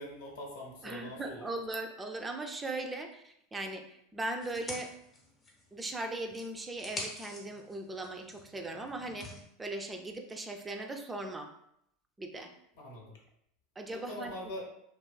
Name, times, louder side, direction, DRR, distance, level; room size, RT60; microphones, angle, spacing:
voice 1, 0.0-1.5 12.7-13.2 13.9-14.7, left 1 dB, 75° left, -1 dB, 0.7 m, -43 dB
voice 2, 0.8-4.9 5.7-11.5 12.2-12.5 13.8-14.3, right 2 dB, 15° right, 4 dB, 0.3 m, -39 dB
sound 1, 4.4-5.9 6.3-9.4, left 2 dB, 25° left, 0.7 m, -46 dB
2.6 x 2.2 x 2.2 m, 0.74 s
hypercardioid pair, 90°, 0 cm